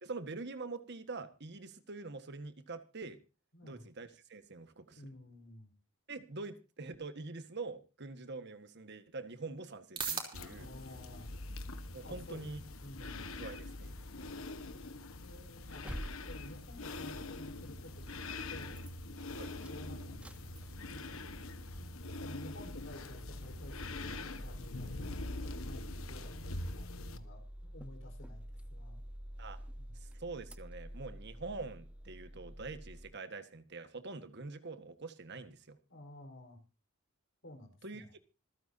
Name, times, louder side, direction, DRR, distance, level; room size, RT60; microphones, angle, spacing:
voice 1, 0.0-3.2 3.6-5.0 6.1-10.7 11.9-12.6 13.4-14.0 19.4-19.5 29.4-29.6 30.0-35.8 37.8-38.2, right 3 dB, 55° right, 10 dB, 1.6 m, -45 dB
voice 2, 3.5-3.8 5.0-5.7 10.5-11.3 12.0-13.5 15.2-15.9 16.3-18.8 19.4-21.2 21.8-21.9 22.2-25.0 25.4-29.0 29.8-29.9 35.9-36.6 37.4-38.1, left 1 dB, 60° left, 4 dB, 4.6 m, -53 dB
sound 1, 8.5-25.4, right 6 dB, 25° right, 3.3 m, -51 dB
sound 2, 10.3-27.2, left 2 dB, 75° left, 1.4 m, -44 dB
sound 3, 15.6-18.2 18.6-18.9 19.2-21.1 21.4-21.5 21.7-21.8 22.4-22.7 22.9-33.1, equal, 5° right, 0.9 m, -48 dB
26.5 x 9.3 x 2.8 m, 0.31 s
head